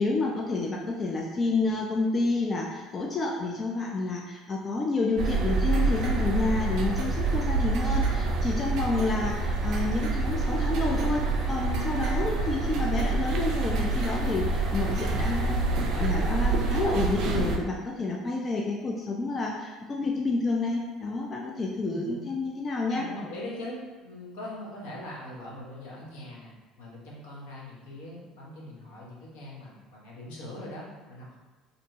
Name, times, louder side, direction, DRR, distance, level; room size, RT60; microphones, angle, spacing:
voice 1, 0.0-23.1, left 3 dB, 35° left, -1 dB, 0.4 m, -29 dB
sound 1, 5.2-17.6, right 3 dB, 60° right, 0.3 m, -27 dB
voice 2, 6.7-7.6 8.0-8.6 21.9-22.3 22.9-31.4, left 1 dB, 75° left, -5 dB, 0.7 m, -42 dB
2.6 x 2.1 x 2.8 m, 1.2 s
hypercardioid pair, 65°, 0 cm